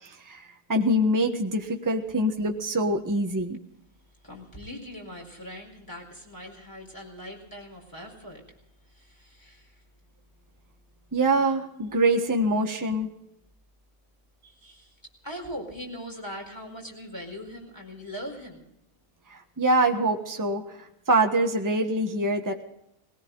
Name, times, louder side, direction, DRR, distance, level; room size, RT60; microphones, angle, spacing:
voice 1, 0.0-3.6 11.1-13.1 19.3-22.6, right 1 dB, 15° right, 3 dB, 1.3 m, -25 dB
voice 2, 4.2-9.8 14.4-14.9 15.2-18.6, equal, 15° left, 1 dB, 4.6 m, -41 dB
20.5 x 18.0 x 3.9 m, 0.78 s
omnidirectional pair, 1.5 m